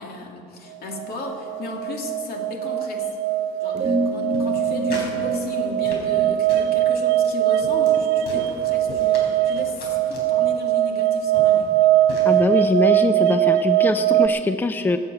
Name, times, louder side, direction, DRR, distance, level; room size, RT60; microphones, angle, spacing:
voice 1, 0.0-3.2 3.6-11.7, left 3 dB, 65° left, 1 dB, 2.4 m, -35 dB
sound 1, 0.9-14.3, right 12 dB, 85° right, 0.5 m, -21 dB
sound 2, 3.7-8.6, right 2 dB, 40° right, 1.3 m, -29 dB
sound 3, 4.3-5.2 5.5-6.2 6.5-6.7 7.2-7.3 7.6-8.0 8.2-9.3 9.6-10.3 11.0-11.1 11.3-11.7 12.1-12.4, left 1 dB, 85° left, 4.0 m, -37 dB
voice 2, 12.2-15.0, left 2 dB, 10° left, 8 dB, 0.5 m, -22 dB
14.5 x 7.9 x 8.2 m, 2.7 s
cardioid pair, 110°, 17 cm